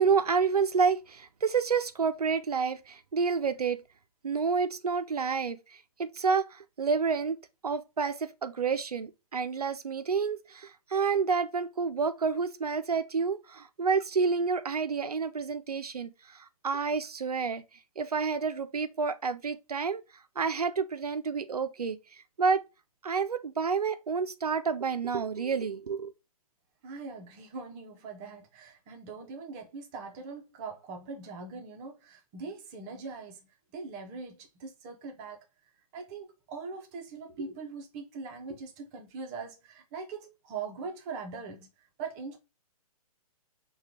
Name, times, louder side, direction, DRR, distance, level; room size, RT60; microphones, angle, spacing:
voice 1, 0.0-3.8 4.2-7.4 7.6-17.6 18.0-22.0 22.4-22.6 23.0-26.1, right 5 dB, 80° right, 0.5 m, -29 dB
voice 2, 26.8-33.5 33.7-35.4 35.9-42.4, right 4 dB, 25° right, 0.7 m, -41 dB
4.9 x 2.3 x 2.7 m
figure-of-eight pair, 125°, 19 cm